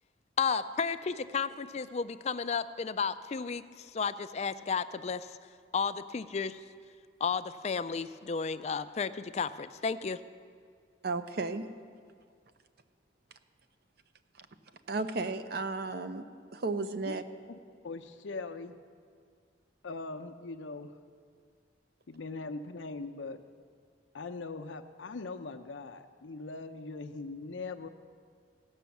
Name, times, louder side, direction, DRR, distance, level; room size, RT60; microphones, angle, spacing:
voice 1, 0.4-5.3 5.7-6.6 7.2-10.2, left 5 dB, 35° left, 13 dB, 0.3 m, -33 dB
voice 2, 11.0-11.6 14.9-16.2 16.5-17.2, right 3 dB, 55° right, 10 dB, 0.6 m, -33 dB
voice 3, 17.8-18.8 19.8-20.9 22.1-23.4 24.1-27.9, left 3 dB, 90° left, 8 dB, 0.7 m, -41 dB
16.5 x 6.3 x 7.0 m, 2.1 s
head